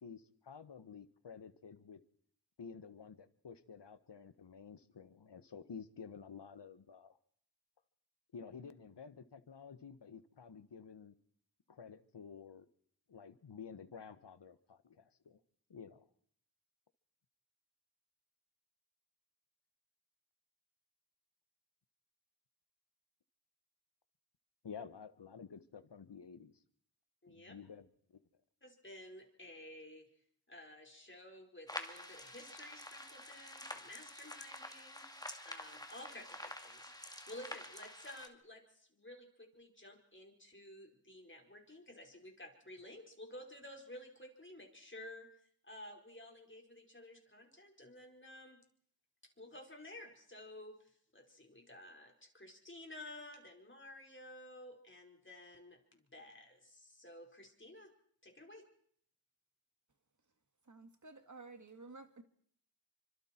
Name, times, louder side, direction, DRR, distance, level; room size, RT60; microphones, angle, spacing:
voice 1, 0.0-2.0 2.6-7.2 8.3-11.1 11.7-12.6 13.1-15.4 15.7-16.1 24.6-26.6 27.3-28.2, left 6 dB, 80° left, 1.4 m, -51 dB
voice 2, 27.2-27.5 28.6-30.0 30.5-35.0 35.4-45.3 45.6-48.6 49.4-57.9 58.2-58.6, left 1 dB, 30° left, 4.9 m, -53 dB
sound 1, 31.7-38.3, left 1 dB, 10° left, 2.3 m, -48 dB
voice 3, 60.6-62.2, right 3 dB, 45° right, 2.2 m, -53 dB
29.0 x 25.0 x 4.5 m
wide cardioid pair, 80°, 41 cm